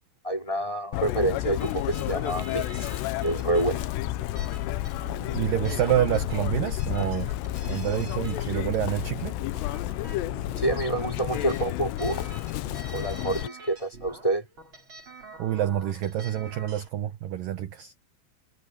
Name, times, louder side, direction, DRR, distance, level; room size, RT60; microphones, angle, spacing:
voice 1, 0.2-2.9 3.2-3.8 10.6-12.3 12.9-14.5, right 2 dB, 10° left, 4.4 m, -28 dB
Chirp tweet, 0.9-13.5, left 15 dB, 80° left, 2.9 m, -31 dB
sound 1, 1.6-16.9, right 2 dB, 30° right, 4.8 m, -47 dB
voice 2, 5.3-7.3 7.6-9.4 15.4-17.9, right 12 dB, 70° right, 2.3 m, -27 dB
omnidirectional pair, 4.9 m